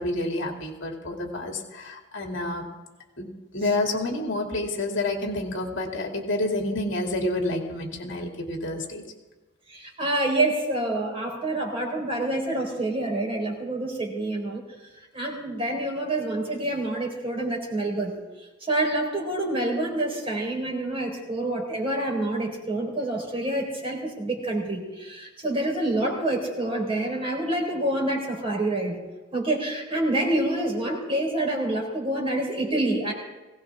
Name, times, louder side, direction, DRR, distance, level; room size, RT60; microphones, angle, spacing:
voice 1, 0.0-2.7 3.2-9.0, left 2 dB, 65° left, 1 dB, 2.6 m, -29 dB
voice 2, 9.7-14.6 15.1-18.1 18.6-29.0 29.3-33.1, right 1 dB, 30° right, 1 dB, 4.3 m, -27 dB
20.0 x 17.5 x 3.7 m, 1.2 s
head